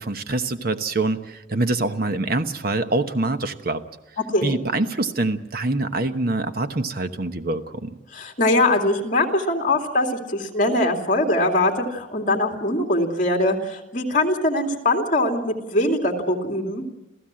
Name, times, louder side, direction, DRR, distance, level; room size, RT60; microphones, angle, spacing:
voice 1, 0.0-3.8 4.4-7.9, right 2 dB, 50° right, 9 dB, 1.1 m, -25 dB
voice 2, 8.1-16.8, left 1 dB, 40° left, 3 dB, 2.6 m, -22 dB
28.0 x 15.5 x 7.6 m, 1.0 s
head